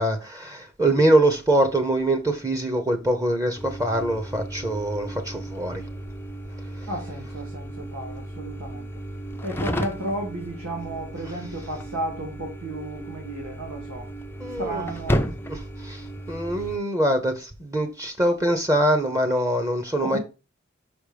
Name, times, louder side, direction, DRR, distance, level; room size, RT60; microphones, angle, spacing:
voice 1, 0.0-5.8 14.4-14.8 15.5-15.6 15.8-16.0 16.3-20.2, right 1 dB, 15° right, 0.9 m, -23 dB
sound 1, 3.6-16.8, equal, 10° left, 0.5 m, -33 dB
voice 2, 6.9-8.9 9.4-14.1 14.6-15.3 16.5-16.7 20.0-20.2, right 1 dB, 85° right, 1.9 m, -33 dB
5.6 x 5.2 x 5.0 m
head